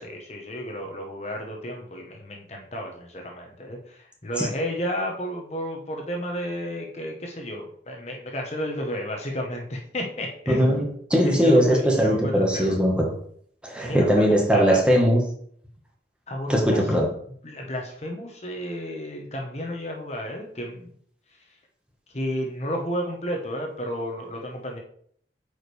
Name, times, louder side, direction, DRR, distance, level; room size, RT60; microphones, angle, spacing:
voice 1, 0.0-10.8 11.2-12.8 13.8-14.2 14.5-14.8 16.3-16.8 17.4-20.9 22.1-24.8, equal, 40° left, 1 dB, 1.1 m, -32 dB
voice 2, 10.5-10.8 11.1-13.1 13.6-15.2 16.5-17.1, equal, 5° right, -1 dB, 1.3 m, -20 dB
8.6 x 5.0 x 3.4 m, 0.62 s
head